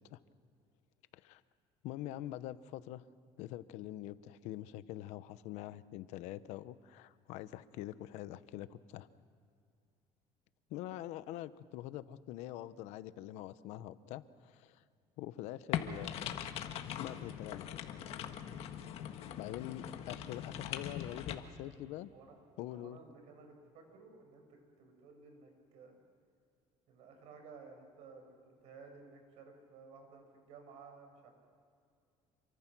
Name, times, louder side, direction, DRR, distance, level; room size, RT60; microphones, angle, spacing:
voice 1, 1.8-3.0 3.4-9.1 10.7-14.8 15.2-16.4 17.0-17.8 19.4-22.1 22.6-23.0, left 14 dB, 85° left, 14 dB, 0.9 m, -45 dB
sound 1, 15.7-21.4, left 9 dB, 60° left, 1.7 m, -41 dB
voice 2, 20.8-21.7 22.1-22.4 22.7-26.0 26.9-31.3, right 4 dB, 70° right, 4 dB, 6.1 m, -56 dB
28.0 x 24.5 x 6.2 m, 2.3 s
cardioid pair, 145°, 11 cm